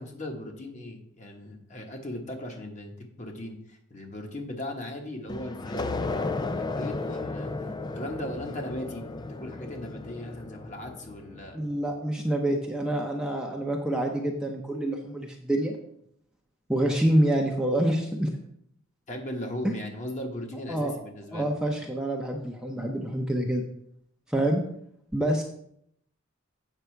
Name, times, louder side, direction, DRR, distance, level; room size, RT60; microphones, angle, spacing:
voice 1, 0.0-7.5 7.9-9.0 9.3-11.6 19.1-21.5, left 1 dB, 35° left, 2 dB, 1.3 m, -38 dB
sound 1, 5.3-11.6, left 3 dB, 20° left, 0.3 m, -34 dB
voice 2, 11.5-15.8 16.7-18.3 19.6-19.7 20.7-20.9 21.3-23.7 24.3-24.6 25.1-25.4, right 1 dB, 5° right, 0 dB, 0.7 m, -26 dB
8.2 x 6.1 x 4.5 m, 0.71 s
head